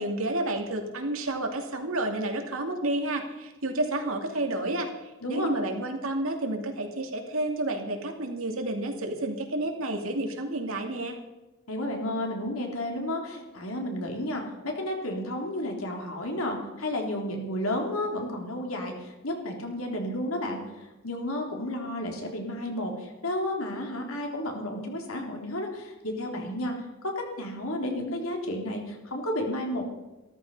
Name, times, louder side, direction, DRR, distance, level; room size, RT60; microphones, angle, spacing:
voice 1, 0.0-11.2, right 1 dB, 80° right, 3 dB, 2.6 m, -30 dB
voice 2, 11.7-26.7 27.4-29.9, left 1 dB, 85° left, 2 dB, 3.3 m, -32 dB
14.5 x 13.5 x 5.5 m, 1.1 s
head